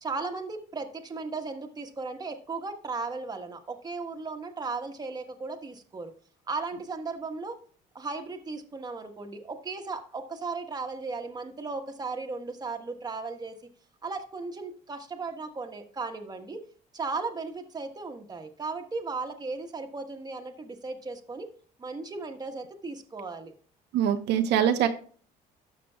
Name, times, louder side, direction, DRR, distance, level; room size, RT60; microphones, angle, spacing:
voice 1, 0.0-6.1 6.5-7.6 7.9-13.6 14.0-16.6 16.9-21.5 21.8-23.5, right 3 dB, 25° right, 4 dB, 1.3 m, -36 dB
voice 2, 23.9-24.9, right 9 dB, 85° right, 7 dB, 0.9 m, -23 dB
12.5 x 6.7 x 2.3 m, 0.43 s
cardioid pair, 110°, 17 cm